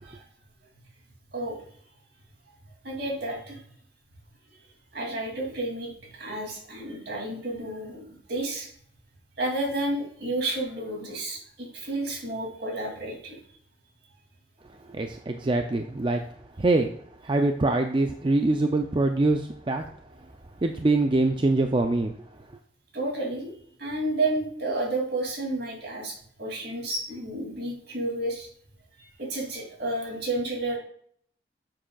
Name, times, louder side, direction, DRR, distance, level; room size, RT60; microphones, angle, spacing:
voice 1, 1.3-1.7 2.8-3.6 4.5-4.6 4.9-8.7 9.4-13.4 22.9-23.5 23.8-28.5 29.0-30.8, right 2 dB, 60° right, -1 dB, 2.7 m, -31 dB
voice 2, 14.9-16.2 16.6-16.9 17.2-19.8 20.6-22.1, right 2 dB, 25° right, 5 dB, 0.4 m, -24 dB
9.8 x 7.6 x 2.3 m, 0.62 s
head